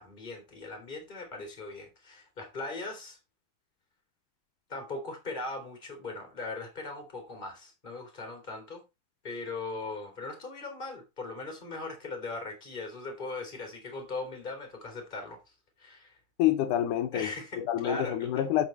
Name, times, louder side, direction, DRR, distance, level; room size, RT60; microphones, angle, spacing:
voice 1, 0.0-3.2 4.7-8.8 9.2-15.4 15.8-16.2 17.1-18.5, left 3 dB, 15° left, 2.7 m, -39 dB
voice 2, 16.4-17.3 17.6-18.7, left 12 dB, 80° left, 2.3 m, -27 dB
8.4 x 5.9 x 4.3 m
omnidirectional pair, 3.6 m